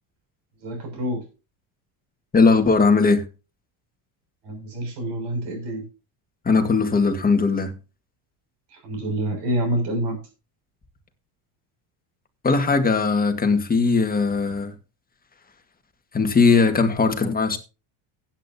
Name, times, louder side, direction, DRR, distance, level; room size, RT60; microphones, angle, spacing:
voice 1, 0.6-1.2 4.4-5.8 8.8-10.2, right 1 dB, 60° right, 6.9 m, -27 dB
voice 2, 2.3-3.2 6.5-7.7 12.4-14.7 16.1-17.6, left 4 dB, 20° left, 1.8 m, -19 dB
16.5 x 8.9 x 2.8 m
cardioid pair, 135°, 47 cm